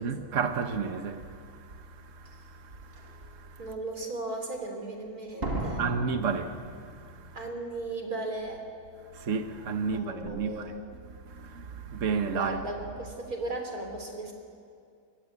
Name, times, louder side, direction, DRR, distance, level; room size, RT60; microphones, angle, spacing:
voice 1, 0.0-3.6 5.8-7.4 9.1-10.7 11.1-12.6, right 5 dB, 55° right, 1.6 m, -33 dB
Slam, 2.2-2.3 3.0-3.3 5.4-7.3 7.5-7.6, right 1 dB, 40° right, 2.8 m, -36 dB
voice 2, 3.6-5.8 7.3-8.7 9.8-10.8 12.3-14.3, right 2 dB, 70° right, 4.3 m, -36 dB
28.0 x 22.5 x 8.4 m
omnidirectional pair, 1.6 m